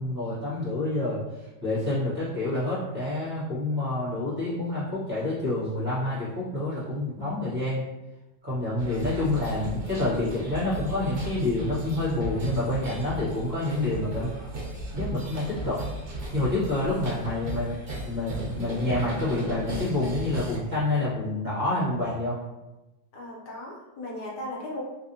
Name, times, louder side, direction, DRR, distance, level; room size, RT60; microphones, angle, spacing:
voice 1, 0.0-7.9 8.4-14.3 14.9-15.8 16.3-17.7 18.0-22.4, left 2 dB, 30° right, -11 dB, 1.2 m, -28 dB
sound 1, 8.8-20.6, right 1 dB, 90° right, 0.5 m, -36 dB
voice 2, 23.1-24.8, left 1 dB, 75° left, -3 dB, 1.3 m, -37 dB
3.1 x 2.6 x 2.7 m, 1.0 s
omnidirectional pair, 1.9 m